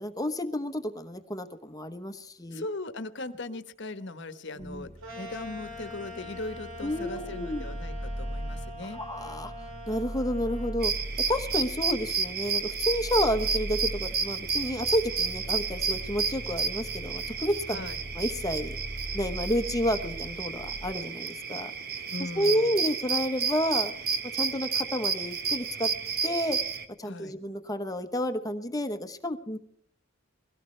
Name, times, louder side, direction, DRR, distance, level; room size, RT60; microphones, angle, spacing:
voice 1, 0.0-2.7 4.6-4.9 6.8-7.6 8.9-9.5 9.9-10.9 11.3-17.8 18.1-18.8 19.1-21.7 22.2-23.9 24.3-25.9 26.2-26.6 27.0-29.6, equal, 15° left, 8 dB, 1.0 m, -30 dB
voice 2, 2.5-9.0 17.7-18.0 22.1-22.8 27.0-27.3, left 2 dB, 60° left, 12 dB, 1.2 m, -39 dB
sound 1, 4.6-20.9, equal, 30° right, 2.8 m, -40 dB
sound 2, 5.0-10.8, equal, 90° right, 6.2 m, -44 dB
sound 3, 10.8-26.9, right 6 dB, 50° right, 1.5 m, -31 dB
22.5 x 17.5 x 3.3 m, 0.67 s
head